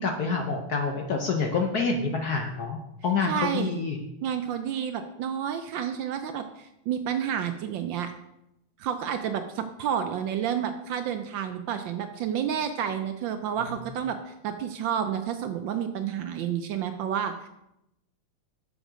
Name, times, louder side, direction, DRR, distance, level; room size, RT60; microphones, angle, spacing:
voice 1, 0.0-4.0, left 4 dB, 60° left, 3 dB, 1.0 m, -27 dB
voice 2, 3.3-3.8 4.2-8.1 8.8-17.5, right 8 dB, 75° right, 8 dB, 1.2 m, -30 dB
6.8 x 6.2 x 5.0 m, 0.85 s
omnidirectional pair, 2.4 m